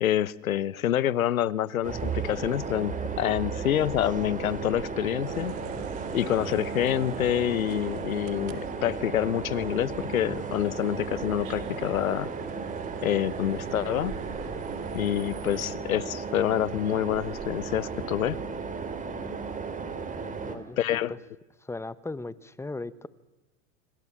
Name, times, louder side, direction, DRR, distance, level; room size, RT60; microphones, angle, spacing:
voice 1, 0.0-5.5 6.1-12.3 13.0-14.1 14.9-18.4 20.8-21.1, left 11 dB, 85° left, 20 dB, 1.1 m, -27 dB
sound 1, 1.8-20.6, right 5 dB, 20° right, 3.6 m, -35 dB
sound 2, 5.3-15.7, right 11 dB, 70° right, 2.5 m, -45 dB
voice 2, 20.4-21.2 21.6-23.1, left 2 dB, 5° left, 17 dB, 0.9 m, -37 dB
26.5 x 25.5 x 7.3 m, 1.1 s
hypercardioid pair, 105°, 41 cm